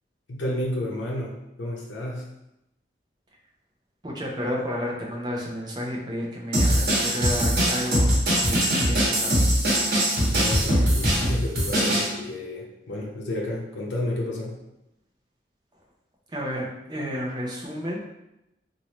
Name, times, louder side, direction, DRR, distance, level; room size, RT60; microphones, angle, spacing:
voice 1, 0.3-2.3 10.3-14.6, left 1 dB, 90° left, -3 dB, 0.8 m, -31 dB
voice 2, 4.0-9.5 16.3-18.0, equal, 25° right, -3 dB, 0.6 m, -31 dB
sound 1, 6.5-12.1, equal, 60° right, 1.1 m, -22 dB
3.0 x 2.6 x 3.0 m, 0.88 s
head